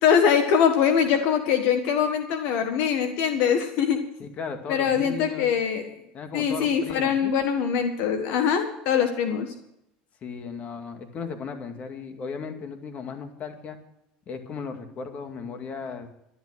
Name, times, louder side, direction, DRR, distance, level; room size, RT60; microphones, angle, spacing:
voice 1, 0.0-4.0 4.7-5.9 6.3-9.5, left 7 dB, 70° left, 6 dB, 1.5 m, -23 dB
voice 2, 4.2-5.5 6.1-7.3 10.2-13.8 14.3-16.2, left 5 dB, 40° left, 6 dB, 2.1 m, -36 dB
12.5 x 11.5 x 6.3 m, 0.82 s
supercardioid pair, 110°, 4 cm